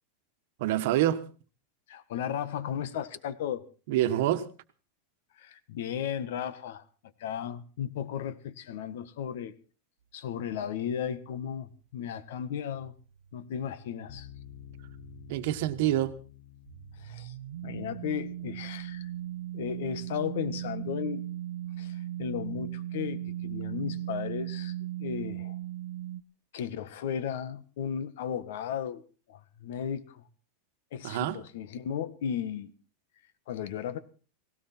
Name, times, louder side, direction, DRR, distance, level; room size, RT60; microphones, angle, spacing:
voice 1, 0.6-1.2 3.9-4.5 15.3-16.1 31.0-31.4, right 13 dB, 50° right, 1.3 m, -26 dB
voice 2, 1.9-3.6 5.4-6.8 7.2-9.5 10.1-12.9 13.3-14.3 17.0-17.3 17.6-19.1 19.5-21.2 21.8-25.6 26.5-29.0 29.3-30.2 30.9-32.7 33.5-34.0, left 8 dB, 65° left, 1.5 m, -35 dB
sound 1, 12.7-16.2 16.7-26.2, right 13 dB, 85° right, 0.7 m, -38 dB
sound 2, 14.1-21.2, left 13 dB, 45° left, 1.5 m, -53 dB
18.5 x 17.0 x 4.4 m
supercardioid pair, 180°, 0 cm